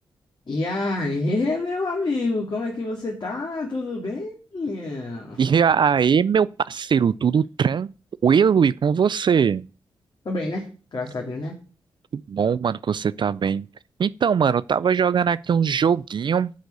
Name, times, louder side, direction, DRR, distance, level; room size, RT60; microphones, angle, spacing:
voice 1, 0.5-5.4 10.2-11.6 14.5-14.6, left 2 dB, 50° left, 2.5 m, -27 dB
voice 2, 5.4-7.9 8.2-9.6 12.1-13.7 14.0-16.5, right 7 dB, 55° right, 0.4 m, -20 dB
11.5 x 4.0 x 6.7 m
cardioid pair, 50°, 10 cm